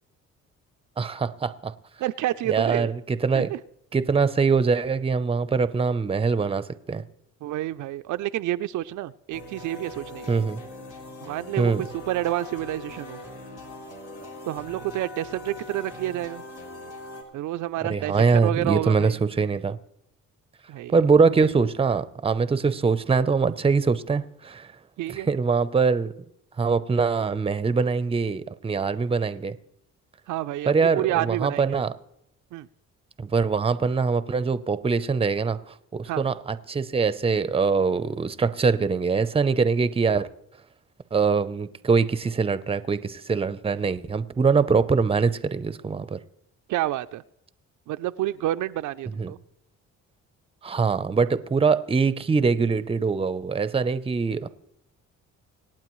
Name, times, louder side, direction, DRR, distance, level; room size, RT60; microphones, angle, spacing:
voice 1, 1.0-1.7 2.5-3.5 3.9-7.0 10.3-10.6 11.6-11.8 17.8-19.8 20.9-24.7 25.1-26.1 26.6-29.6 30.7-31.9 33.2-40.3 41.1-46.2 49.2-49.3 50.6-54.5, right 5 dB, 20° right, 0.6 m, -23 dB
voice 2, 2.0-2.9 3.4-3.6 7.4-10.3 11.2-11.7 12.1-13.2 14.5-16.4 17.3-19.2 20.7-20.9 25.0-25.3 30.3-31.8 32.5-32.7 36.1-36.2 46.7-47.2 47.9-49.4, right 14 dB, 75° right, 0.5 m, -29 dB
sound 1, 9.3-17.2, left 2 dB, 80° left, 3.1 m, -41 dB
25.5 x 8.9 x 3.1 m
cardioid pair, 90°, 30 cm